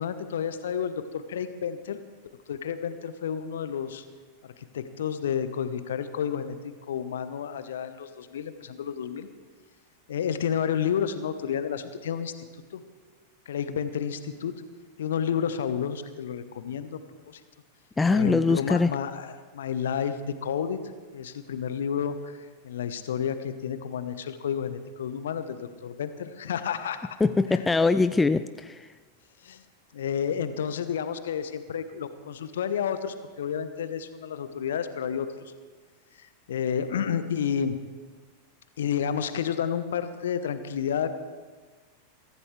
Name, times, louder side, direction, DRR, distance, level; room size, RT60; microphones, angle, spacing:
voice 1, 0.0-2.0 2.5-4.0 4.6-9.3 10.1-12.3 12.7-12.8 13.5-14.5 15.0-17.0 17.3-17.4 18.1-20.8 21.1-22.4 22.6-27.1 27.5-27.7 29.4-29.6 29.9-35.5 36.2-37.8 38.8-41.2, left 8 dB, 60° left, 11 dB, 1.0 m, -30 dB
voice 2, 18.0-18.9 27.2-28.8, left 3 dB, 10° left, 12 dB, 0.4 m, -22 dB
23.0 x 14.5 x 3.3 m, 1.4 s
figure-of-eight pair, 90°, 0 cm